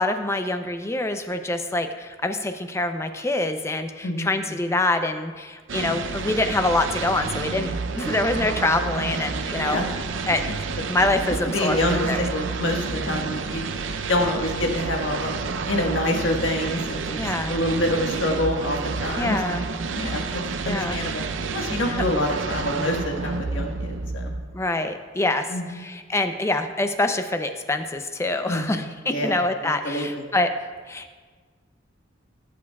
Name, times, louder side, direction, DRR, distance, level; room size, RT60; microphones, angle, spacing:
voice 1, 0.0-9.8 10.3-10.4 10.9-11.8 12.1-12.2 17.2-17.5 19.2-19.6 20.6-21.0 21.8-22.1 24.5-30.5 30.9-31.2, left 2 dB, 15° left, 7 dB, 0.5 m, -25 dB
voice 2, 4.0-4.7 9.6-9.8 10.3-10.4 11.0-11.2 11.4-13.7 14.1-15.3 15.7-17.2 17.5-19.6 19.8-21.2 21.5-24.2 25.5-25.8 28.5-29.4 29.6-30.2, left 1 dB, 80° left, 1 dB, 1.5 m, -27 dB
sound 1, 5.7-24.7, right 4 dB, 80° right, 0.6 m, -30 dB
16.5 x 8.5 x 2.3 m, 1.5 s
head